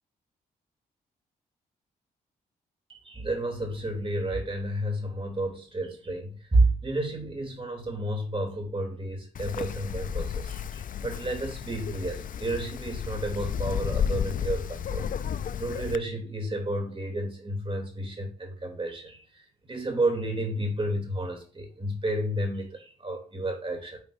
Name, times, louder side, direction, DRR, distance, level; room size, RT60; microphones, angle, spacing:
voice 1, 2.9-15.1 15.6-19.2 19.7-24.0, right 1 dB, 30° right, 3.0 m, -31 dB
Wind, 9.4-16.0, left 8 dB, 50° left, 0.4 m, -32 dB
9.2 x 4.2 x 2.6 m
supercardioid pair, 50°, 18 cm